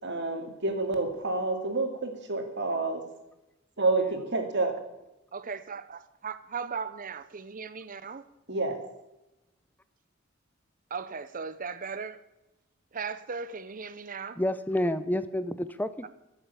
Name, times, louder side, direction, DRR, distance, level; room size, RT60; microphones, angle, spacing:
voice 1, 0.0-3.0 3.8-4.8 8.5-8.8, right 3 dB, 60° right, 2.3 m, -29 dB
voice 2, 5.3-8.3 10.9-12.2 12.9-14.4, right 5 dB, 45° right, 0.8 m, -37 dB
voice 3, 14.4-16.1, left 1 dB, 10° left, 0.7 m, -29 dB
13.0 x 8.1 x 8.3 m
head